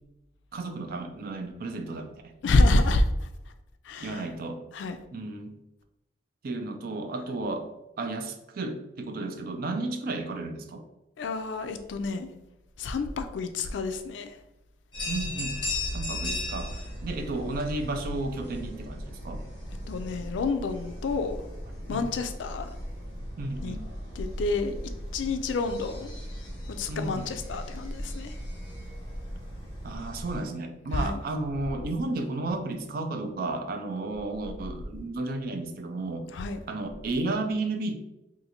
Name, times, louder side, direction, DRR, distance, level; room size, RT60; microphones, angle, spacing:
voice 1, 0.5-2.3 4.0-4.6 5.1-5.6 6.4-7.7 8.0-10.8 15.1-15.6 15.9-19.4 21.9-22.1 23.4-23.9 26.9-27.4 29.8-36.3 36.7-37.9, right 2 dB, 55° right, 0.4 m, -33 dB
voice 2, 2.4-3.3 3.8-4.2 4.7-5.0 11.2-12.3 12.8-14.4 19.9-21.4 21.9-22.7 23.6-23.8 24.2-24.8 25.1-26.1 26.7-28.4 30.9-31.2 36.3-36.6, left 2 dB, 80° left, 0.4 m, -28 dB
sound 1, 14.9-30.4, left 1 dB, 25° left, 1.3 m, -37 dB
2.6 x 2.5 x 4.1 m
head